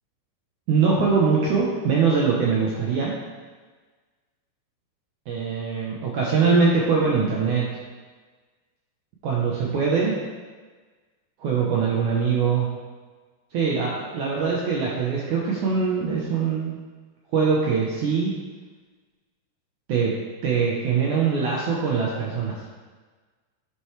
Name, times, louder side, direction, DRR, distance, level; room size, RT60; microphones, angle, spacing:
voice 1, 0.7-3.1 5.3-7.6 9.2-10.1 11.4-12.7 13.5-16.8 17.3-18.3 19.9-20.1 20.4-22.6, right 5 dB, 85° right, -4 dB, 1.7 m, -22 dB
10.0 x 6.6 x 3.3 m, 1.4 s
omnidirectional pair, 5.0 m